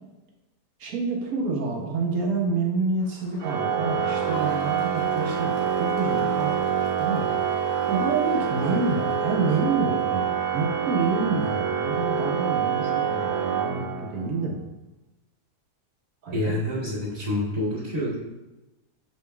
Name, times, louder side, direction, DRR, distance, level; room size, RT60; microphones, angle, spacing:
voice 1, 0.8-7.4 7.9-14.6 16.2-16.5, right 3 dB, 60° right, -1 dB, 1.5 m, -28 dB
Crowd, 3.0-9.8, left 2 dB, 85° left, 1.8 m, -43 dB
Organ, 3.4-14.3, right 8 dB, 75° right, 1.1 m, -26 dB
voice 2, 16.3-18.2, left 1 dB, 30° right, -10 dB, 2.3 m, -27 dB
7.9 x 5.3 x 2.3 m, 1.0 s
omnidirectional pair, 1.9 m